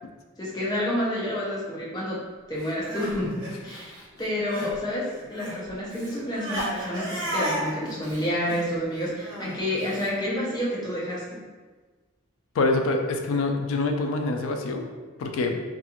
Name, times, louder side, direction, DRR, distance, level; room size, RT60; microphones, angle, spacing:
voice 1, 0.4-2.2 2.5-11.4, left 1 dB, 20° left, -6 dB, 0.6 m, -29 dB
Crying sobbing, 2.6-4.8 5.0-10.1, equal, 75° right, 0.9 m, -34 dB
voice 2, 12.6-14.9 15.2-15.6, left 3 dB, 80° left, 4 dB, 0.3 m, -25 dB
2.4 x 2.3 x 2.9 m, 1.4 s
head